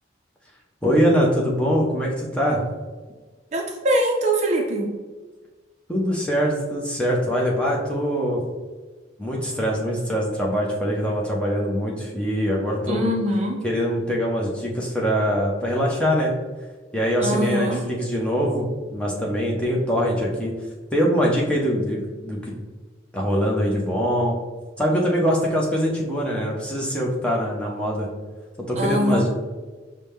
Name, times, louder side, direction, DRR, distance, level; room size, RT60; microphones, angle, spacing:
voice 1, 0.8-2.6 5.9-8.4 9.2-13.1 13.6-16.3 16.9-20.5 20.9-22.5 23.1-24.4 24.8-28.1 28.7-29.3, equal, 5° left, -3 dB, 0.6 m, -23 dB
voice 2, 3.5-4.9 12.9-13.6 17.2-17.8 28.8-29.3, equal, 35° right, 0 dB, 0.5 m, -23 dB
6.0 x 2.1 x 3.4 m, 1.3 s
head